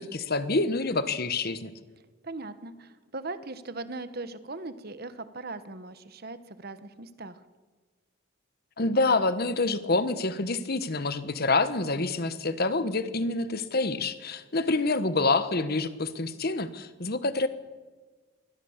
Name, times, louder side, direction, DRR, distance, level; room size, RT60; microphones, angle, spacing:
voice 1, 0.0-1.7 8.8-17.5, left 3 dB, 50° left, 12 dB, 1.2 m, -27 dB
voice 2, 2.2-7.4, right 3 dB, 50° right, 12 dB, 1.2 m, -39 dB
23.0 x 17.5 x 7.3 m, 1.4 s
head